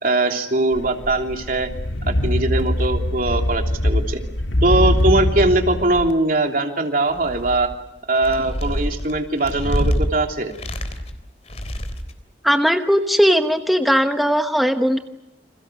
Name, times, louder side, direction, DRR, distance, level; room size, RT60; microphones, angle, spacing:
voice 1, 0.0-1.7 2.0-4.2 4.6-7.7 8.1-10.5, right 2 dB, 50° right, 3 dB, 3.2 m, -21 dB
sound 1, 0.7-6.1, left 1 dB, 75° left, 1.6 m, -22 dB
sound 2, 7.1-7.7 8.1-10.1 10.5-11.2 11.5-12.1, equal, 35° left, 3.4 m, -26 dB
voice 2, 12.4-15.0, equal, ahead, 5 dB, 1.1 m, -18 dB
29.5 x 27.0 x 6.4 m, 0.86 s
head